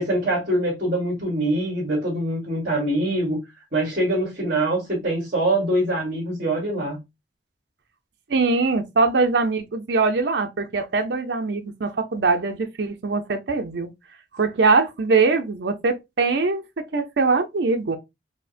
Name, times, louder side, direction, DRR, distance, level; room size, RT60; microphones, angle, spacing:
voice 1, 0.0-3.4 3.7-7.0, right 1 dB, 45° right, 1.8 m, -24 dB
voice 2, 8.3-13.9 14.3-18.0, right 4 dB, 70° right, 0.6 m, -22 dB
4.8 x 2.1 x 2.4 m
head